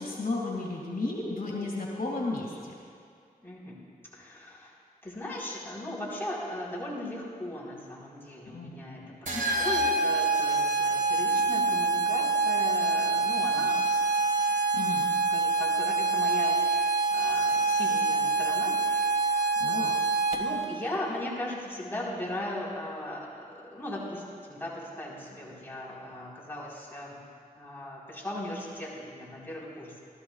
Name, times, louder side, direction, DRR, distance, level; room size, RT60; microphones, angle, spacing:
voice 1, 0.0-2.7 8.5-9.4 14.7-15.1 19.6-19.9, left 2 dB, 75° left, -3 dB, 2.3 m, -34 dB
voice 2, 3.4-3.8 4.1-4.7 5.0-14.0 15.3-19.9 20.3-24.2 24.5-27.2 27.6-29.9, left 1 dB, 15° left, -6 dB, 4.2 m, -38 dB
sound 1, 9.3-20.6, right 3 dB, 60° right, 1.7 m, -26 dB
28.5 x 13.0 x 2.4 m, 2.3 s
wide cardioid pair, 85°, 15 cm